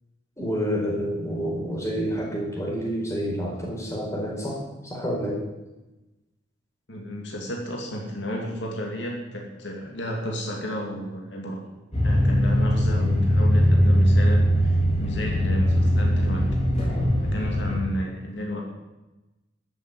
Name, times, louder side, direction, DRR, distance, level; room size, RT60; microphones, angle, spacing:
voice 1, 0.4-5.4, equal, 15° left, -2 dB, 4.7 m, -28 dB
voice 2, 6.9-11.6 12.0-16.5 17.2-18.6, equal, 65° left, 0 dB, 2.5 m, -32 dB
sound 1, 11.9-17.8, equal, 35° left, 4.8 m, -21 dB
14.0 x 7.6 x 9.3 m, 1.0 s
head